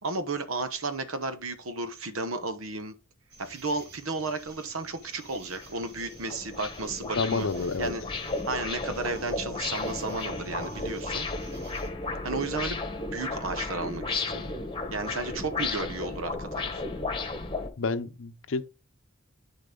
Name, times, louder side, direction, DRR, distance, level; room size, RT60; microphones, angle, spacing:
voice 1, 0.0-2.9 3.4-7.5 7.8-8.0 8.4-11.3 12.2-14.5 14.9-16.8, right 3 dB, 75° right, 1.0 m, -33 dB
sound 1, 3.3-11.9, right 2 dB, 50° right, 2.4 m, -52 dB
sound 2, 4.8-4.9 5.3-17.7, left 3 dB, 25° left, 1.2 m, -34 dB
voice 2, 7.1-7.9 17.8-18.7, left 4 dB, 65° left, 0.6 m, -29 dB
10.5 x 4.0 x 3.8 m
head